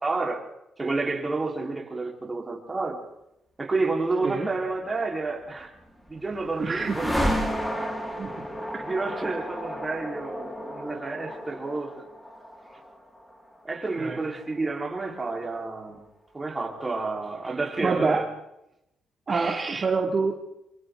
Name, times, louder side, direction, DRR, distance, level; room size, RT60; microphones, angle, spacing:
voice 1, 0.0-0.4 0.8-3.0 3.6-5.7 6.1-7.4 8.9-11.9 13.6-16.0 16.3-18.2 19.3-19.8, right 3 dB, 25° right, 0 dB, 4.6 m, -30 dB
sound 1, 5.6-15.7, equal, 15° left, 4.6 m, -33 dB
voice 2, 6.6-7.3 8.2-8.3 14.0-14.2 17.8-18.2 19.3-20.3, right 4 dB, 40° right, -1 dB, 2.9 m, -26 dB
26.0 x 25.5 x 4.1 m, 0.85 s
cardioid pair, 90°, 0 cm